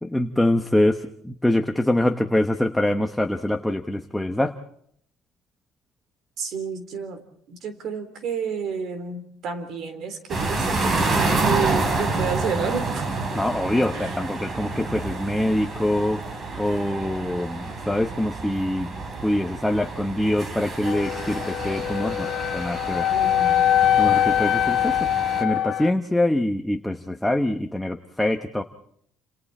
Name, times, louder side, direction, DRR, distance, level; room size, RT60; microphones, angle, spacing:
voice 1, 0.0-4.6 13.3-16.2 16.6-18.9 19.2-22.3 22.5-23.1 24.0-25.1 25.4-28.6, left 1 dB, 5° left, 6 dB, 0.9 m, -24 dB
voice 2, 6.4-7.2 7.5-13.1 13.9-14.3 23.1-23.7, right 5 dB, 50° right, 10 dB, 3.7 m, -31 dB
sound 1, 10.3-25.4, right 3 dB, 30° right, 3.0 m, -29 dB
sound 2, 20.8-25.9, left 11 dB, 45° left, 1.3 m, -22 dB
29.5 x 27.5 x 4.3 m, 0.66 s
cardioid pair, 165°, 0 cm